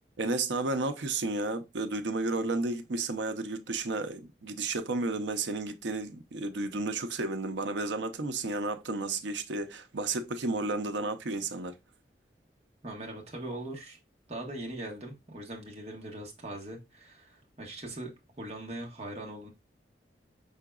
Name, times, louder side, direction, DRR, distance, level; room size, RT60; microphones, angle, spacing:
voice 1, 0.2-11.7, right 3 dB, 85° right, 0.6 m, -32 dB
voice 2, 12.8-14.0 14.3-18.1 18.4-19.5, right 1 dB, 35° right, 1.2 m, -40 dB
5.6 x 3.8 x 2.3 m
head